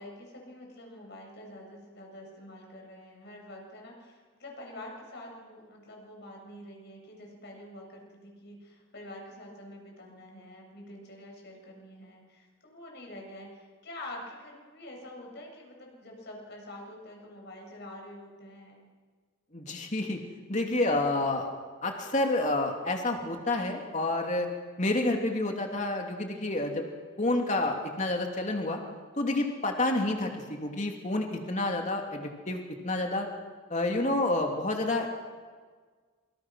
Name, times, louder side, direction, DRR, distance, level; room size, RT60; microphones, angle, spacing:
voice 1, 0.0-18.9, left 1 dB, 50° left, 0 dB, 7.8 m, -46 dB
voice 2, 19.5-20.2 20.5-21.5 21.8-24.5 24.8-26.9 27.2-28.8 29.2-33.3 33.7-35.1, left 2 dB, 35° left, 2 dB, 2.9 m, -29 dB
27.5 x 26.5 x 6.4 m, 1.5 s
head